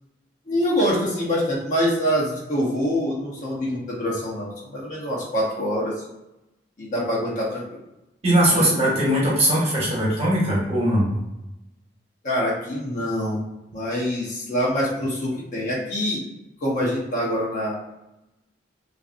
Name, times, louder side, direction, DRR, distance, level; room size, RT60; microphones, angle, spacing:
voice 1, 0.5-6.0 6.8-7.6 8.5-9.0 12.2-13.4 13.7-16.2 16.6-17.7, equal, 45° left, -5 dB, 0.9 m, -25 dB
voice 2, 8.2-11.1, right 1 dB, 35° right, -6 dB, 1.2 m, -20 dB
3.2 x 2.5 x 2.5 m, 0.94 s
head